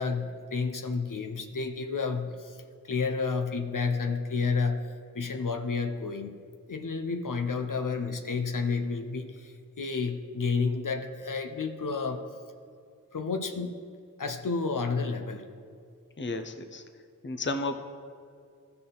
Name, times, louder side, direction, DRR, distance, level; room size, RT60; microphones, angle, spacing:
voice 1, 0.0-2.6 2.8-4.9 5.1-6.3 6.7-12.2 13.1-13.8 14.2-15.4, left 4 dB, 75° left, 6 dB, 0.7 m, -30 dB
voice 2, 16.2-16.8 17.2-17.8, left 2 dB, 35° left, 8 dB, 0.6 m, -32 dB
14.5 x 5.8 x 3.9 m, 2.3 s
wide cardioid pair, 45°, 32 cm